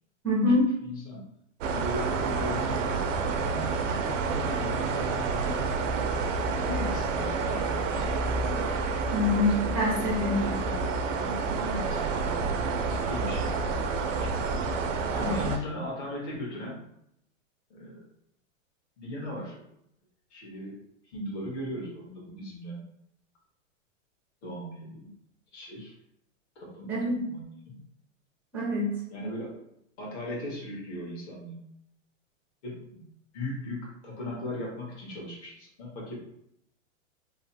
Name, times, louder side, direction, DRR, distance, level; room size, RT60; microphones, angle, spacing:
voice 1, 0.2-0.6 9.1-10.4 26.9-27.2 28.5-28.9, left 2 dB, 5° right, -7 dB, 0.4 m, -25 dB
voice 2, 0.8-1.3 1.6-5.7 6.5-8.1 9.5-10.7 11.2-12.0 12.4-13.6 14.0-14.5 15.1-16.8 17.7-18.0 19.0-19.6 20.3-20.8 21.0-22.8 24.4-25.1 25.5-25.9 26.5-26.9 27.2-27.8 29.1-29.5 30.0-31.6 32.6-33.0 33.3-36.1, left 1 dB, 55° left, -4 dB, 1.4 m, -38 dB
sound 1, 1.6-15.6, right 4 dB, 75° right, 0.5 m, -29 dB
3.1 x 2.0 x 2.6 m, 0.76 s
supercardioid pair, 155°, 39 cm